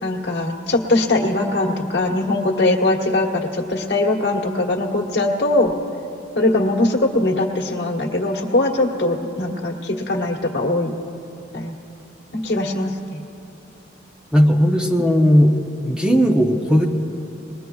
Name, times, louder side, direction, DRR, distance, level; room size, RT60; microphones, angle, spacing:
voice 1, 0.0-5.7 6.3-11.0 11.5-11.7 12.3-13.2, left 2 dB, 60° left, 0 dB, 1.5 m, -21 dB
voice 2, 14.3-15.5 15.8-16.8, equal, 5° right, 1 dB, 0.8 m, -16 dB
21.0 x 20.5 x 2.3 m, 2.8 s
head